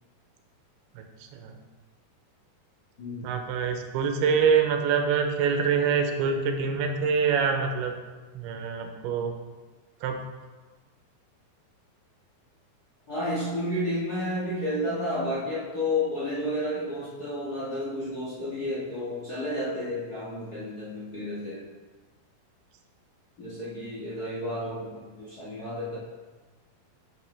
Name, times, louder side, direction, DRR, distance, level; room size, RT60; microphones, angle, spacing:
voice 1, 0.9-1.6 3.2-7.9 8.3-9.3 10.0-10.2, right 6 dB, 85° right, 5 dB, 2.6 m, -25 dB
voice 2, 3.0-3.3 13.1-21.6 23.4-26.0, left 1 dB, 65° left, -9 dB, 0.9 m, -31 dB
8.5 x 6.6 x 3.2 m, 1.3 s
omnidirectional pair, 4.4 m